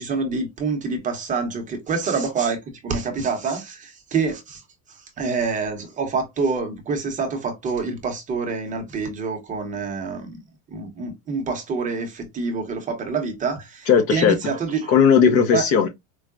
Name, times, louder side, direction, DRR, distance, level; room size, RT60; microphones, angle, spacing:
voice 1, 0.0-4.6 5.2-10.3 10.7-14.9 15.5-15.6, right 4 dB, 20° right, 0.7 m, -26 dB
voice 2, 13.9-14.5 14.9-15.9, left 7 dB, 40° left, 0.5 m, -17 dB
4.6 x 2.0 x 2.4 m
cardioid pair, 170°, 39 cm